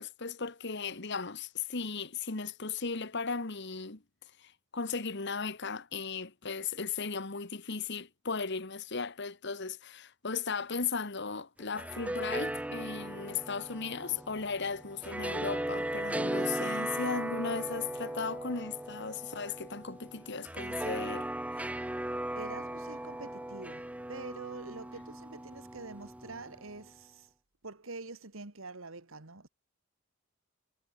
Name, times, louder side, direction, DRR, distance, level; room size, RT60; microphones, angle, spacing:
voice 1, 0.0-4.0 4.4-21.3 21.6-21.7, left 5 dB, 55° left, 1.6 m, -36 dB
sound 1, 11.6-26.8, right 1 dB, 5° right, 0.6 m, -37 dB
voice 2, 22.4-27.3 27.6-29.5, right 3 dB, 65° right, 2.1 m, -46 dB
head